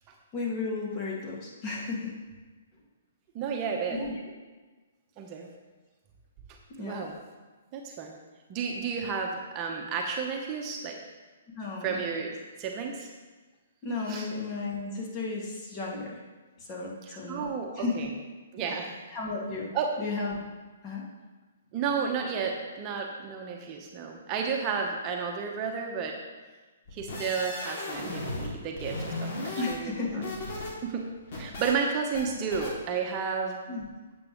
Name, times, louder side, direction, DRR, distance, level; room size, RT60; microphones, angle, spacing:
voice 1, 0.3-2.2 3.9-4.1 6.8-7.1 11.5-12.0 13.8-16.2 16.6-17.9 19.1-20.4 20.8-21.0 29.6-30.3 33.7-33.9, left 3 dB, 30° left, -3 dB, 2.1 m, -34 dB
voice 2, 3.3-4.0 5.2-5.5 6.8-7.2 7.7-8.2 8.5-11.0 11.8-13.1 14.1-14.3 17.0-18.1 18.5-18.9 19.7-19.9 21.7-26.2 26.9-29.3 29.7-30.2 30.8-31.1 31.3-33.6, right 5 dB, 30° right, 1 dB, 1.0 m, -32 dB
sound 1, 26.9-28.5 28.8-30.7 31.0-31.7 32.1-32.2 32.5-32.7, left 2 dB, 50° left, 2.7 m, -36 dB
9.3 x 8.0 x 3.1 m, 1.3 s
hypercardioid pair, 125°, 0 cm